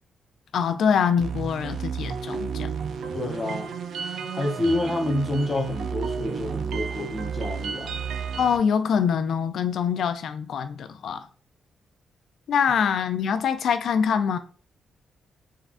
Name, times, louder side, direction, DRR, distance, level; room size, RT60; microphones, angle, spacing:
voice 1, 0.5-2.7 8.4-11.2 12.5-14.4, left 7 dB, 75° left, 0.3 m, -24 dB
sound 1, 1.2-8.6, right 6 dB, 75° right, 0.3 m, -32 dB
voice 2, 3.1-3.7 4.3-7.9, left 1 dB, 35° left, 0.7 m, -28 dB
3.6 x 2.1 x 2.4 m
cardioid pair, 65°, 0 cm